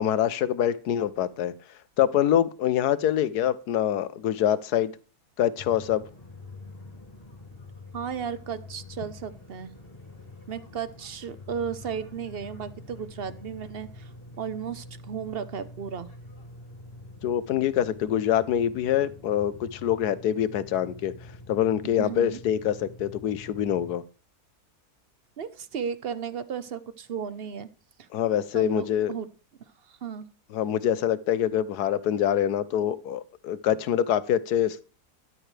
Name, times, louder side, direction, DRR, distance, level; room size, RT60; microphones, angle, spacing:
voice 1, 0.0-1.5 2.0-4.9 5.4-6.0 17.2-21.1 21.5-24.0 28.1-29.1 30.5-34.8, left 10 dB, 80° left, 15 dB, 1.3 m, -25 dB
sound 1, 5.6-24.0, left 2 dB, 35° left, 3.2 m, -46 dB
voice 2, 7.9-9.7 10.5-14.1 14.4-16.1 22.0-22.4 25.4-27.7 28.0-28.1 28.5-29.3 29.9-30.2, right 7 dB, 45° right, 13 dB, 1.0 m, -34 dB
13.5 x 11.5 x 3.3 m, 0.37 s
omnidirectional pair, 1.7 m